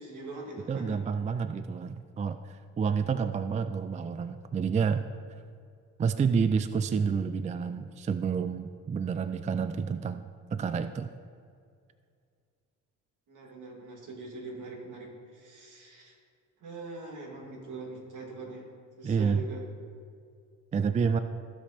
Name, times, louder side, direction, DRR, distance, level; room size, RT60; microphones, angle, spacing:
voice 1, 0.0-1.0 13.3-16.1 16.6-18.7 19.0-19.6, right 3 dB, 65° right, -1 dB, 2.5 m, -42 dB
voice 2, 0.7-5.1 6.0-11.1 19.0-19.5 20.7-21.2, right 6 dB, 25° right, 11 dB, 0.3 m, -29 dB
15.5 x 5.3 x 4.3 m, 2.3 s
cardioid pair, 90°, 33 cm